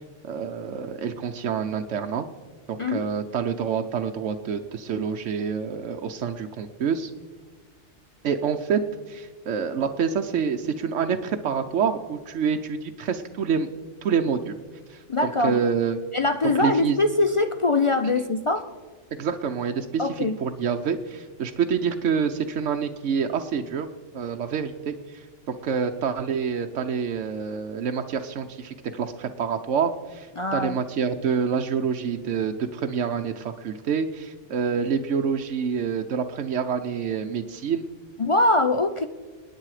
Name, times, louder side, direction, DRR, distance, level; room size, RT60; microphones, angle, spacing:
voice 1, 0.2-2.3 2.7-7.1 8.2-13.7 14.0-14.5 14.9-16.0 16.4-17.0 18.0-18.1 19.2-23.9 24.1-37.8, right 6 dB, 75° right, 4 dB, 1.1 m, -27 dB
voice 2, 15.1-15.6 16.1-18.7 20.0-20.4 30.4-30.8 38.2-39.1, left 2 dB, 45° left, 9 dB, 0.4 m, -22 dB
28.5 x 9.6 x 4.9 m, 1.4 s
omnidirectional pair, 1.3 m